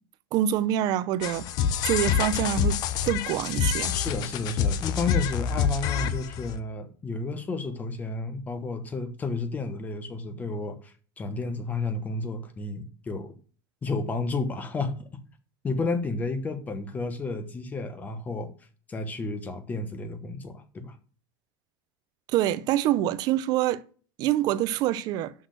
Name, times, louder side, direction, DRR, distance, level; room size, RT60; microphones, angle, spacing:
voice 1, 0.3-1.5 1.8-2.8 3.1-4.0 22.3-23.8 24.2-25.3, right 12 dB, 35° right, 0.5 m, -25 dB
sound 1, 1.2-6.6, left 7 dB, 40° left, 0.7 m, -27 dB
voice 2, 3.9-13.3 13.8-15.0 15.6-18.5 18.9-21.0, left 3 dB, 15° left, 1.1 m, -32 dB
6.3 x 6.2 x 6.5 m
supercardioid pair, 160°, 11 cm